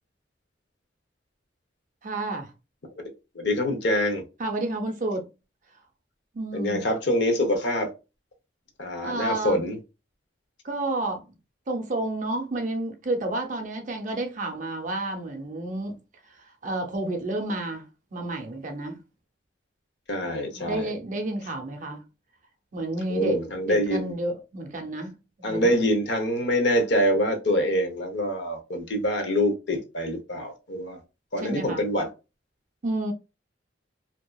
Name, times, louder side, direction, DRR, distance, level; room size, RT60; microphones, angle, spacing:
voice 1, 2.0-2.5 4.4-5.3 6.3-6.9 9.0-9.6 10.6-11.3 11.7-16.0 16.2-19.0 20.5-22.0 22.7-23.4 23.7-25.7 31.4-31.8 32.8-33.1, right 2 dB, 45° right, 0.5 m, -30 dB
voice 2, 3.3-4.2 6.5-7.9 8.8-9.8 20.1-20.9 23.1-24.1 25.4-31.0 31.3-32.1, equal, 65° left, 0.7 m, -25 dB
2.7 x 2.3 x 2.2 m
head